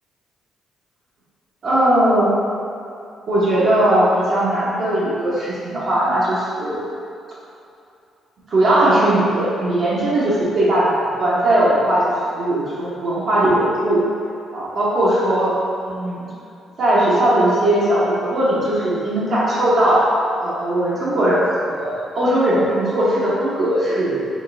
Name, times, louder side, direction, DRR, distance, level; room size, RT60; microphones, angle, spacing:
voice 1, 1.6-2.3 3.3-6.8 8.5-12.0 12.3-14.0 14.5-15.5 15.9-16.3 16.8-20.1 20.4-24.3, right 1 dB, 60° right, -9 dB, 1.1 m, -18 dB
5.1 x 3.6 x 2.6 m, 2.6 s
cardioid pair, 90°, 0 cm